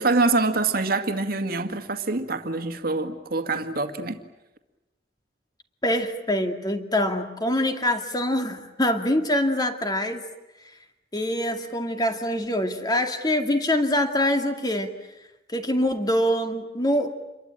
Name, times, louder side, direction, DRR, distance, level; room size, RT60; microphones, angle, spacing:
voice 1, 0.0-4.2, right 3 dB, 55° right, 2.0 m, -25 dB
voice 2, 5.8-10.2 11.1-14.9 15.5-17.1, left 1 dB, 20° left, 2.3 m, -24 dB
28.0 x 23.0 x 9.0 m
head